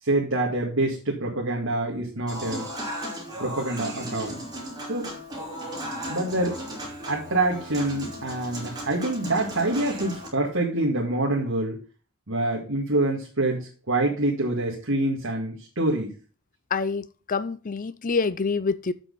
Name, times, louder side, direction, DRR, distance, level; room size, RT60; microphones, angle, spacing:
voice 1, 0.0-2.7 3.4-4.4 4.9-5.1 6.1-6.6 7.1-11.8 12.3-16.1, right 2 dB, 65° right, -5 dB, 2.2 m, -26 dB
Human voice / Acoustic guitar / Piano, 2.3-10.3, equal, 20° right, 2.9 m, -36 dB
voice 2, 16.7-18.9, left 4 dB, 40° left, 16 dB, 0.5 m, -26 dB
7.7 x 6.3 x 5.5 m, 0.36 s
head